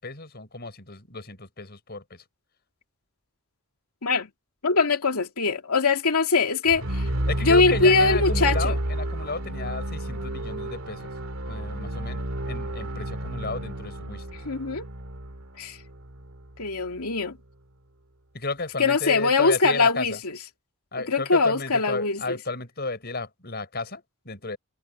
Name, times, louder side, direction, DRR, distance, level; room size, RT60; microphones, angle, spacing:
voice 1, 0.0-2.2 7.3-11.1 11.4-14.2 18.3-20.2 20.9-24.6, left 3 dB, 45° left, 6.2 m, -33 dB
voice 2, 4.6-7.1 7.4-8.8 14.5-14.9 15.6-15.8 16.6-17.4 18.8-20.4 21.1-22.4, left 4 dB, 85° left, 2.5 m, -22 dB
sound 1, 6.7-16.7, right 1 dB, 70° right, 2.5 m, -30 dB
head